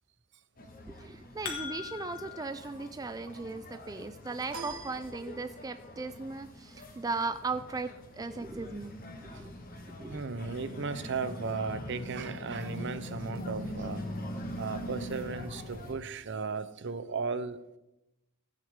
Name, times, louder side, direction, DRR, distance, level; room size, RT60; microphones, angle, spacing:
sound 1, 0.6-15.9, left 1 dB, 40° left, 1.6 m, -43 dB
voice 1, 0.9-9.0 9.3-9.5 10.0-10.2, right 3 dB, 15° right, 0.3 m, -37 dB
sound 2, 1.0-2.5, left 7 dB, 85° left, 2.1 m, -40 dB
sound 3, 4.5-5.9, right 3 dB, 75° right, 2.3 m, -44 dB
voice 2, 10.1-14.1 14.4-17.6, right 4 dB, 55° right, 0.7 m, -36 dB
15.0 x 9.0 x 3.7 m
head